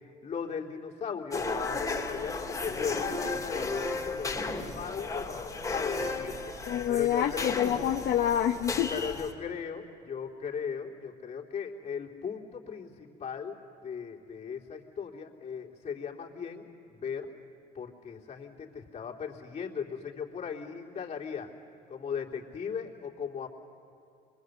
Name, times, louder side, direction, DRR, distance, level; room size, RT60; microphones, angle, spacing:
voice 1, 0.0-7.5 8.9-13.6 13.8-17.3 17.7-21.5 21.9-23.5, left 6 dB, 40° left, -2 dB, 3.5 m, -38 dB
sound 1, 1.3-9.3, left 3 dB, 20° left, 2.8 m, -34 dB
voice 2, 6.7-8.9, left 10 dB, 70° left, 3 dB, 1.1 m, -27 dB
26.5 x 23.0 x 8.2 m, 2.9 s
cardioid pair, 110°, 17 cm